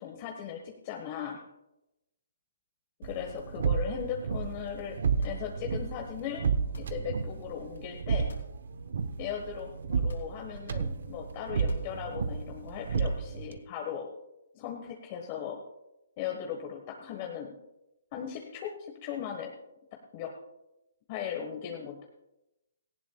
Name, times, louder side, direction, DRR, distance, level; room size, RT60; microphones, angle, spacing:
voice 1, 0.0-1.4 3.0-5.0 5.2-6.5 6.8-8.3 9.2-14.1 14.5-15.6 16.2-17.6 18.1-19.5 20.1-20.3 21.1-22.1, left 8 dB, 35° left, 2 dB, 1.3 m, -38 dB
sound 1, 3.0-13.6, right 5 dB, 65° right, 1.0 m, -32 dB
sound 2, 5.2-5.8 6.6-7.2 8.2-8.6 9.0-9.1 10.0-10.7 11.5-12.2, left 2 dB, 75° left, 2.9 m, -48 dB
17.5 x 15.5 x 2.3 m, 0.93 s
hypercardioid pair, 140°, 0 cm